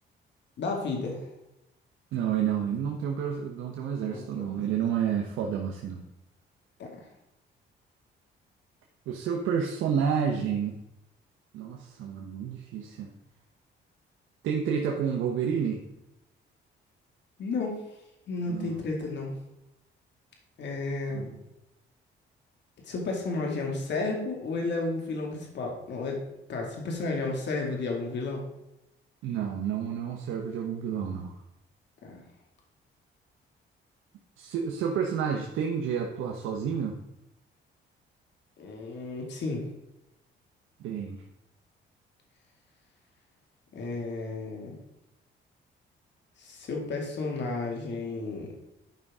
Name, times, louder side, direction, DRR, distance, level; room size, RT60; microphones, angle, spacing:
voice 1, 0.6-1.3 4.0-4.6 6.8-6.9 17.4-17.8 18.3-19.3 20.6-21.3 22.9-26.2 26.5-28.4 32.0-32.2 38.6-39.7 43.7-44.8 46.4-48.5, left 3 dB, 65° left, 0 dB, 2.2 m, -32 dB
voice 2, 2.1-6.0 9.1-10.8 11.5-13.1 14.4-15.8 18.5-18.8 21.1-21.4 29.2-31.3 34.4-37.0 40.8-41.2, right 7 dB, 85° right, 1 dB, 0.9 m, -30 dB
11.5 x 5.4 x 3.7 m, 0.88 s
cardioid pair, 90°, 20 cm